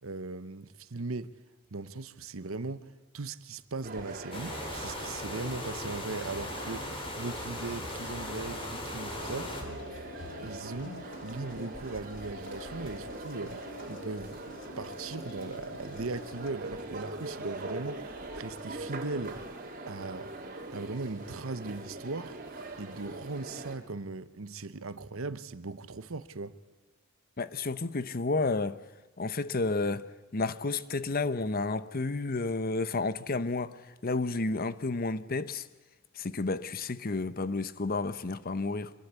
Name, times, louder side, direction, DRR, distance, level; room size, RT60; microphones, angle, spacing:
voice 1, 0.0-1.3 1.7-2.9 3.1-6.9 7.2-9.5 10.4-13.6 13.9-14.4 14.8-19.4 19.9-20.3 20.7-22.4 22.8-26.5, right 3 dB, 70° right, 1.0 m, -38 dB
sound 1, 3.8-23.7, right 2 dB, 40° right, 3.2 m, -42 dB
sound 2, 4.3-9.6, left 1 dB, 25° left, 3.7 m, -39 dB
sound 3, 9.2-16.5, left 2 dB, 60° left, 2.0 m, -46 dB
voice 2, 27.4-28.8 29.2-35.7 36.1-38.9, left 3 dB, 45° left, 0.8 m, -31 dB
26.5 x 21.5 x 8.2 m
head